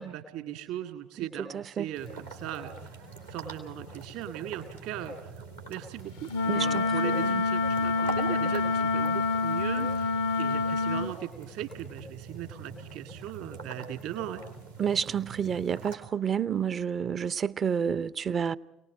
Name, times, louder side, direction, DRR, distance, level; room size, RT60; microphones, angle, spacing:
voice 1, 0.0-2.7 3.3-5.2 5.7-14.4, right 10 dB, 60° right, 2.2 m, -38 dB
voice 2, 1.5-1.9 6.5-7.4 14.8-18.6, right 7 dB, 40° right, 0.6 m, -30 dB
sound 1, 1.9-16.0, right 4 dB, 90° right, 3.2 m, -44 dB
Wind instrument woodwind instrument, 6.3-11.1, left 4 dB, 70° left, 0.7 m, -27 dB
29.0 x 19.5 x 5.1 m
figure-of-eight pair, 50°, 0 cm